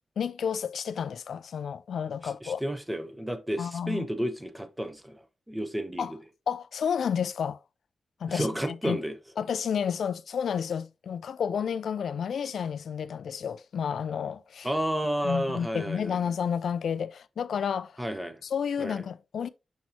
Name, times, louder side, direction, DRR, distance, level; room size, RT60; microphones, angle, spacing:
voice 1, 0.2-2.6 3.6-4.1 6.0-6.1 6.5-7.6 8.2-9.0 9.4-14.7 15.2-18.0 18.4-19.5, left 7 dB, 85° left, 0.4 m, -31 dB
voice 2, 2.2-5.2 5.5-6.2 8.3-9.2 14.6-16.2 18.0-18.4 18.8-19.0, equal, 10° right, 0.8 m, -31 dB
6.3 x 5.7 x 2.9 m
wide cardioid pair, 130°, 0 cm